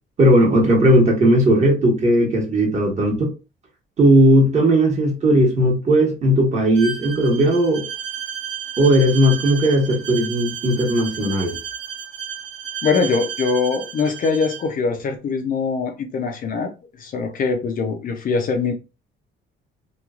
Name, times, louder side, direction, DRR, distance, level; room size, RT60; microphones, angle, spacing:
voice 1, 0.2-3.3 4.0-7.8 8.8-11.6, right 1 dB, 35° right, 1.1 m, -16 dB
Bowed string instrument, 6.7-14.7, right 8 dB, 70° right, 0.7 m, -32 dB
voice 2, 12.8-18.7, left 4 dB, 45° left, 0.5 m, -22 dB
3.0 x 2.3 x 2.3 m
cardioid pair, 140°, 20 cm